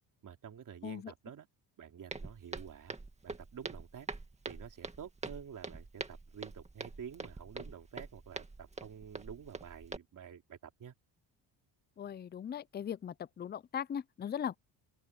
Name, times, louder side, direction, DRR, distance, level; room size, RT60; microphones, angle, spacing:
voice 1, 0.2-1.5 1.8-3.0 3.2-4.1 4.5-10.9, right 8 dB, 45° right, 3.2 m, -49 dB
Walk footsteps, 2.1-10.0, right 3 dB, 15° right, 2.1 m, -45 dB
voice 2, 12.0-14.6, left 8 dB, 25° left, 0.5 m, -39 dB
open air
cardioid pair, 125°, 43 cm